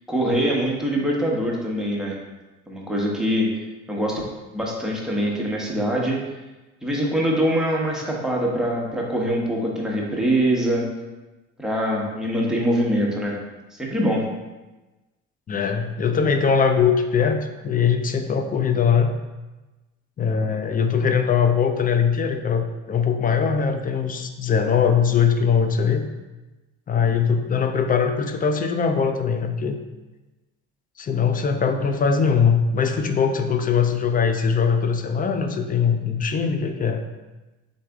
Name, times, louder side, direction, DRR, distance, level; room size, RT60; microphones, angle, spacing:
voice 1, 0.1-2.2 2.7-3.5 3.9-4.2 4.5-6.2 6.8-10.8 11.6-13.3 13.7-14.2, equal, ahead, -3 dB, 1.0 m, -23 dB
voice 2, 15.5-19.1 20.2-26.1 26.9-29.8 31.0-37.0, left 6 dB, 25° left, 6 dB, 0.4 m, -21 dB
3.9 x 3.2 x 3.5 m, 1.1 s
supercardioid pair, 75°, 33 cm